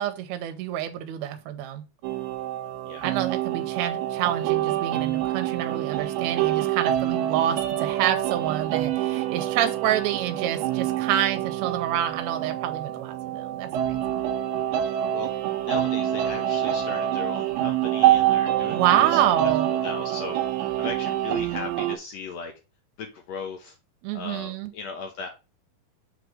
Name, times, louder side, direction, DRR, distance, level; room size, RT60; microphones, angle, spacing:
voice 1, 0.0-1.8 3.0-14.2 18.7-19.7 24.0-24.7, right 11 dB, 70° right, 7 dB, 1.9 m, -27 dB
sound 1, 2.0-22.0, right 12 dB, 90° right, 2.3 m, -26 dB
voice 2, 14.8-15.3 15.7-19.2 19.7-20.4 20.8-22.5 23.0-23.8 24.1-25.3, left 5 dB, 70° left, 3 dB, 1.6 m, -37 dB
6.2 x 3.3 x 4.8 m, 0.28 s
omnidirectional pair, 3.9 m